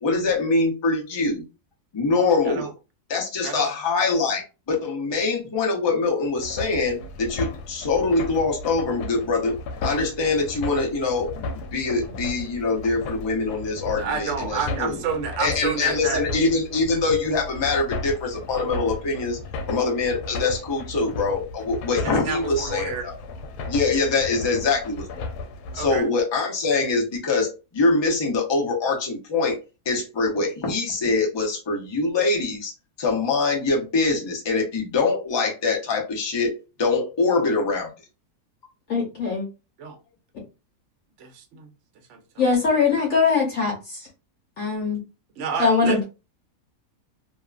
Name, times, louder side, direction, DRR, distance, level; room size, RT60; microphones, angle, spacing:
voice 1, 0.0-1.4 1.9-2.7 3.1-9.6 9.8-15.0 15.4-19.4 19.7-23.2 23.7-25.4 25.7-29.6 29.9-32.7 33.0-36.5 36.8-37.9, left 3 dB, 45° left, 0.3 m, -24 dB
sound 1, 6.4-26.0, left 3 dB, 85° left, 1.1 m, -35 dB
voice 2, 14.0-16.2 22.0-23.1 25.7-26.1 39.8-40.0 41.2-41.7 42.1-42.4 42.7-43.0 45.4-46.0, right 6 dB, 60° right, 0.8 m, -30 dB
voice 3, 38.9-39.5 42.4-44.1 44.6-45.0 45.6-46.0, left 4 dB, 65° left, 1.0 m, -21 dB
2.8 x 2.3 x 2.3 m
omnidirectional pair, 1.7 m